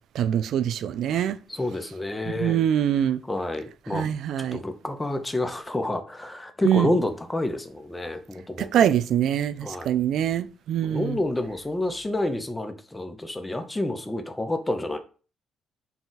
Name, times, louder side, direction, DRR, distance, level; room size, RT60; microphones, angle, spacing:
voice 1, 0.1-1.4 2.3-3.2 3.9-4.6 6.6-6.9 8.6-11.2, right 10 dB, 75° right, 0.3 m, -24 dB
voice 2, 1.5-2.6 3.3-8.9 9.6-9.9 10.8-15.0, left 1 dB, 15° left, 0.6 m, -29 dB
4.1 x 2.4 x 3.9 m
cardioid pair, 90°, 0 cm